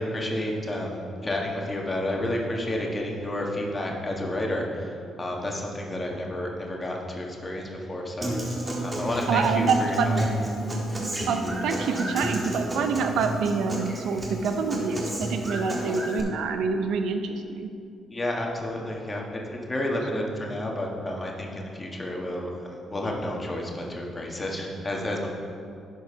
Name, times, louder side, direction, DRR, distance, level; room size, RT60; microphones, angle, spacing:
voice 1, 0.0-4.9 5.2-8.3 8.8-10.3 18.1-25.3, left 1 dB, 25° left, -1 dB, 1.5 m, -30 dB
Human voice / Acoustic guitar, 8.2-16.2, right 1 dB, 20° right, 1.7 m, -31 dB
voice 2, 9.3-10.1 11.3-17.7, right 5 dB, 80° right, 6 dB, 0.6 m, -26 dB
10.5 x 4.6 x 5.8 m, 2.5 s
cardioid pair, 90°, 0 cm